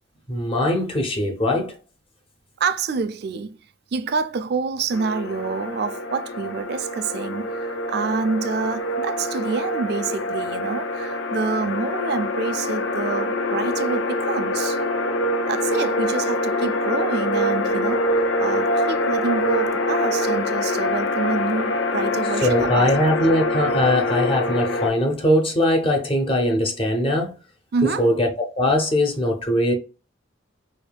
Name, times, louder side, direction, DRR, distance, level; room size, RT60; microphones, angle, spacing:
voice 1, 0.3-1.8 22.4-27.3 28.0-29.7, left 1 dB, 30° left, 0.8 m, -21 dB
voice 2, 2.6-3.6 3.9-14.8 15.5-23.1 27.7-28.1, right 4 dB, 55° right, 0.3 m, -27 dB
sound 1, 4.9-24.9, left 1 dB, 85° left, 0.6 m, -25 dB
4.9 x 2.6 x 2.3 m
head